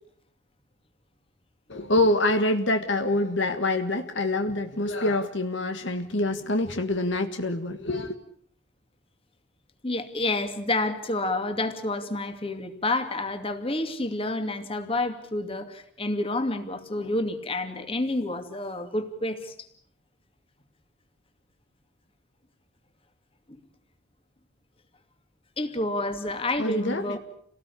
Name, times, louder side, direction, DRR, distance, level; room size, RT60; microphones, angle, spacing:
voice 1, 1.7-8.1 26.6-27.2, left 2 dB, 60° left, 6 dB, 1.7 m, -26 dB
voice 2, 9.8-19.5 25.6-27.2, left 2 dB, 25° left, 7 dB, 2.5 m, -29 dB
29.5 x 18.5 x 8.6 m, 0.66 s
head